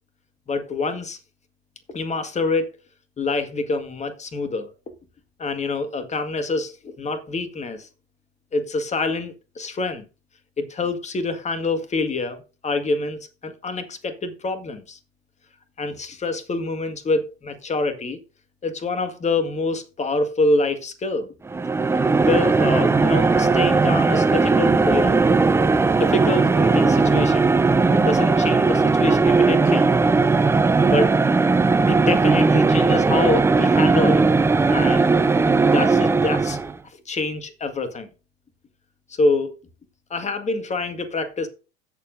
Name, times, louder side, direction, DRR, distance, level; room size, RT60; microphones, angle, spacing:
voice 1, 0.5-1.2 1.9-2.7 3.2-4.7 5.4-7.9 8.5-10.1 10.6-15.0 15.8-18.2 18.6-21.3 22.2-25.2 25.8-27.5 27.9-29.9 30.9-31.2 31.9-34.2 34.7-35.0 35.7-36.6 37.1-38.1 39.2-39.6 40.1-41.5, left 3 dB, 20° left, 8 dB, 1.8 m, -26 dB
sound 1, 21.5-36.8, right 4 dB, 10° right, 0.5 m, -18 dB
16.0 x 7.0 x 2.6 m, 0.32 s
figure-of-eight pair, 75°, 32 cm